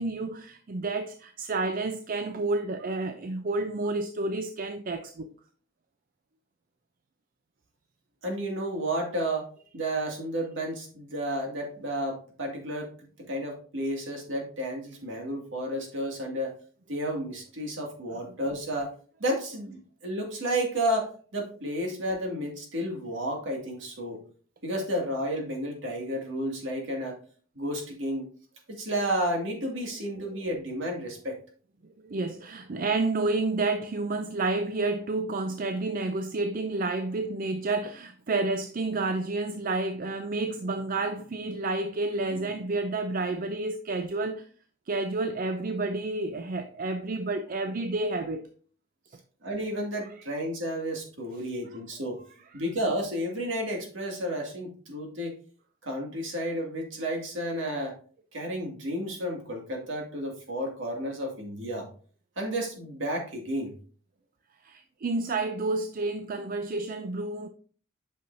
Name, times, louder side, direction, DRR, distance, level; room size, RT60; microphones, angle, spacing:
voice 1, 0.0-5.3 18.2-18.3 32.0-44.5 44.9-48.5 52.5-52.6 64.6-67.5, right 3 dB, 45° right, 0.5 m, -30 dB
voice 2, 8.2-9.5 9.7-12.9 13.3-16.5 16.9-18.9 19.2-24.2 24.6-27.2 27.6-28.2 28.7-31.4 49.4-52.2 52.5-55.3 55.8-57.9 58.3-61.9 62.4-63.7, equal, 70° right, 2.1 m, -31 dB
8.5 x 5.7 x 2.6 m
head